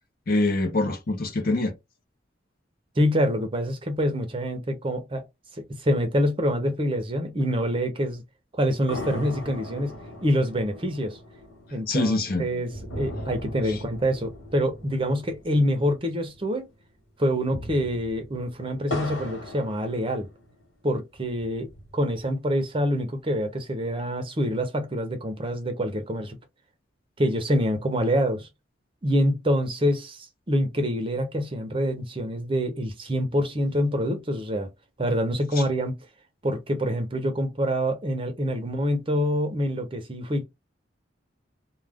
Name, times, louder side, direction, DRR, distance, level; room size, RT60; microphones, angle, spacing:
voice 1, 0.3-1.7 11.9-12.5 13.7-13.8, left 2 dB, 50° left, 0.7 m, -24 dB
voice 2, 3.0-5.2 5.6-8.2 8.5-9.9 10.2-11.2 11.7-16.7 17.2-20.3 20.8-26.4 27.2-28.5 29.0-34.7 35.0-36.0 36.4-40.4, equal, 25° right, 0.6 m, -26 dB
sound 1, 8.9-16.5 16.7-16.8 17.3-20.6 21.2-22.2, left 1 dB, 90° left, 1.3 m, -39 dB
2.4 x 2.2 x 3.4 m
head